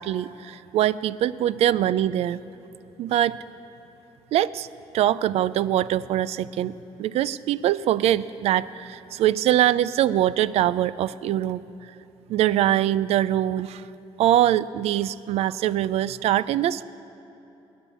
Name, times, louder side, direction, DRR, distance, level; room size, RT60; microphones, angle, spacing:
voice 1, 0.0-2.4 3.0-3.4 4.3-4.7 4.9-6.7 7.0-11.6 12.3-13.8 14.2-16.8, right 12 dB, 75° right, 18 dB, 0.4 m, -23 dB
20.0 x 8.6 x 7.0 m, 2.9 s
cardioid pair, 95°, 11 cm